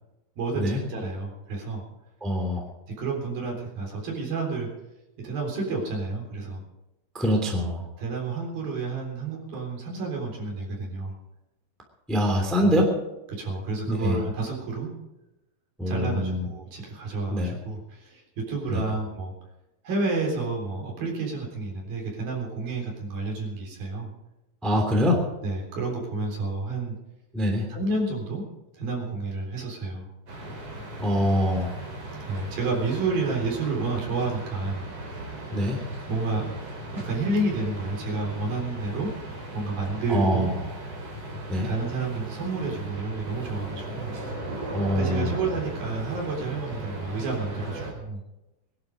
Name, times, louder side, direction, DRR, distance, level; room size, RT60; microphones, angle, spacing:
voice 1, 0.4-1.8 3.0-4.7 5.2-6.6 8.0-11.1 12.6-12.7 13.3-14.9 15.9-19.3 19.8-24.1 25.4-27.0 27.7-28.4 28.7-30.1 32.2-34.9 36.1-36.5 36.9-39.1 39.5-40.5 41.6-44.1 45.0-48.2, right 3 dB, 60° right, -1 dB, 5.4 m, -30 dB
voice 2, 2.2-2.6 7.1-7.8 12.1-12.9 13.9-14.2 15.8-16.5 17.3-17.6 18.7-18.8 24.6-25.2 27.3-27.6 31.0-31.7 35.5-35.8 40.1-40.5 41.5-41.7 44.7-45.3, equal, ahead, 1 dB, 2.2 m, -24 dB
sound 1, 30.3-47.9, right 1 dB, 40° right, 5.0 m, -37 dB
21.5 x 12.0 x 5.1 m, 0.96 s
omnidirectional pair, 4.9 m